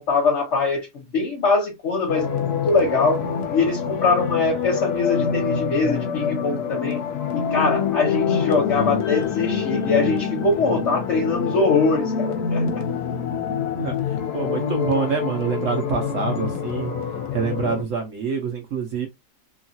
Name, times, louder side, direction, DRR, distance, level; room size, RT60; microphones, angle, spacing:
voice 1, 0.0-3.2 3.5-7.0 7.3-12.8, left 3 dB, 50° left, 1.1 m, -22 dB
sound 1, 2.1-17.8, left 7 dB, 70° left, 1.1 m, -26 dB
voice 2, 14.3-16.9 17.3-19.1, right 5 dB, 60° right, 0.9 m, -26 dB
3.0 x 2.4 x 2.6 m
omnidirectional pair, 1.8 m